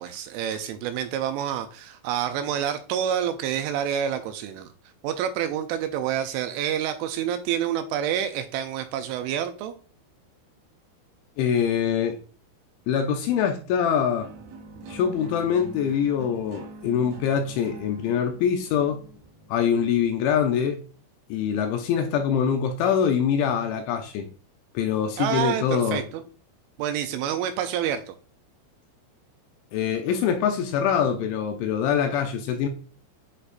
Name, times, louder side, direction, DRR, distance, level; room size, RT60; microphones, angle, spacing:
voice 1, 0.0-4.7 5.0-9.8 25.2-26.2 26.8-28.1, right 9 dB, 85° right, 2.9 m, -28 dB
voice 2, 11.4-12.2 12.9-14.3 14.9-19.0 19.5-20.8 21.3-24.3 24.7-26.0 29.7-32.7, left 8 dB, 80° left, 2.8 m, -24 dB
sound 1, 14.2-20.2, right 2 dB, 65° right, 2.7 m, -44 dB
9.9 x 4.0 x 2.5 m
omnidirectional pair, 5.8 m